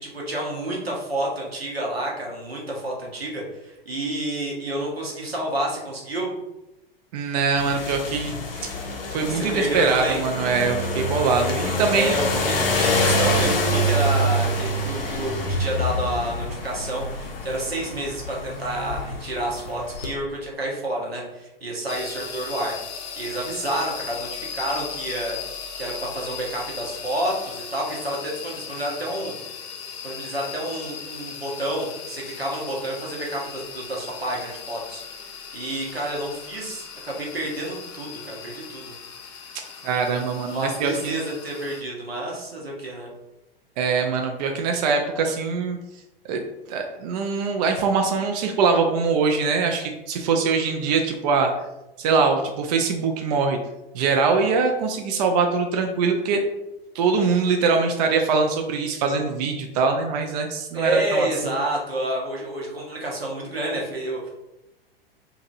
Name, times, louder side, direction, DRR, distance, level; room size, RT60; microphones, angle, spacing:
voice 1, 0.0-6.3 9.3-10.2 11.9-22.8 23.2-25.4 25.8-29.4 30.0-35.0 35.3-39.0 40.5-43.1 60.7-64.3, right 1 dB, 85° right, -2 dB, 0.9 m, -29 dB
voice 2, 7.1-8.4 9.1-12.1 39.8-41.2 43.8-45.8 46.3-46.4 46.7-51.5 52.0-53.6 53.9-56.4 56.9-61.3, right 5 dB, 45° right, 4 dB, 0.4 m, -23 dB
sound 1, 7.6-20.1, left 1 dB, 70° left, 0.7 m, -26 dB
sound 2, 21.9-41.8, left 7 dB, 30° left, 0.4 m, -38 dB
2.8 x 2.6 x 2.6 m, 0.96 s
figure-of-eight pair, 95°, 30 cm